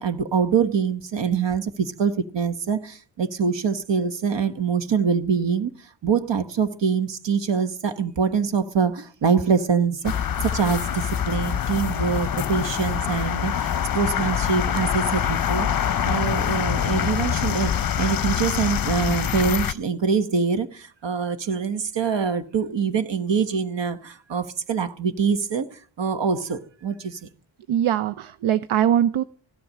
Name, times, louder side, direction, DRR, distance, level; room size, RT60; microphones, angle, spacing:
voice 1, 0.0-5.7 6.0-15.7 16.0-27.2, right 6 dB, 60° right, 1.5 m, -24 dB
sound 1, 10.0-19.7, left 9 dB, 45° left, 0.7 m, -25 dB
voice 2, 27.7-29.2, right 10 dB, 75° right, 0.7 m, -21 dB
15.0 x 12.0 x 6.6 m
cardioid pair, 95°, 49 cm